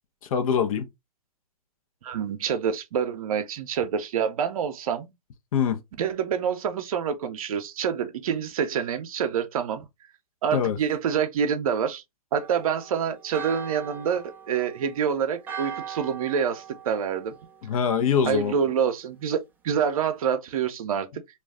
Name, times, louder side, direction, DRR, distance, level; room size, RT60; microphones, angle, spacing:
voice 1, 0.3-0.9 5.5-5.8 10.5-10.8 17.6-18.6, left 7 dB, 60° left, 0.7 m, -23 dB
voice 2, 2.0-5.1 6.0-9.9 10.4-12.0 12.3-17.3 18.3-21.2, right 7 dB, 60° right, 0.6 m, -27 dB
Church bell, 12.3-18.0, right 7 dB, 10° right, 0.4 m, -41 dB
2.4 x 2.3 x 3.4 m
hypercardioid pair, 120°, 20 cm